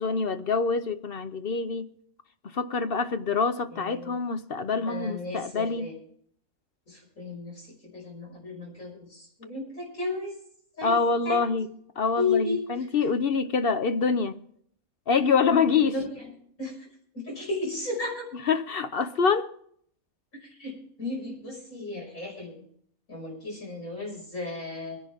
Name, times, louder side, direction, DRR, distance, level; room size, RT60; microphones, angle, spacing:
voice 1, 0.0-1.9 2.4-5.9 10.8-11.7 12.0-14.4 15.1-15.9 18.5-19.5, left 5 dB, 50° left, 0.8 m, -25 dB
voice 2, 3.7-4.2 4.7-6.0 6.9-10.3 10.8-11.5 12.1-12.9 16.6-16.9 17.1-18.3 20.4-22.6 23.1-25.0, left 3 dB, 70° left, 6.0 m, -34 dB
24.0 x 10.5 x 3.6 m
omnidirectional pair, 1.5 m